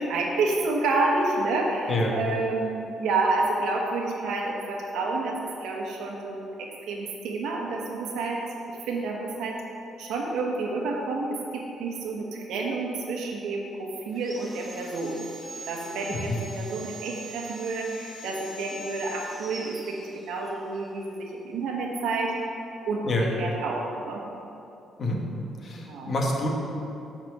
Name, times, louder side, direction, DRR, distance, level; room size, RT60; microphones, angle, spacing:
voice 1, 0.0-8.4 8.7-9.6 10.0-15.2 15.7-24.2 25.7-26.1, right 3 dB, 85° right, -1 dB, 1.2 m, -29 dB
Sawing, 14.1-20.6, right 1 dB, 30° right, 1.8 m, -43 dB
voice 2, 25.6-26.5, left 1 dB, 50° left, 0 dB, 1.4 m, -27 dB
7.2 x 4.4 x 6.9 m, 2.8 s
cardioid pair, 90°, 0 cm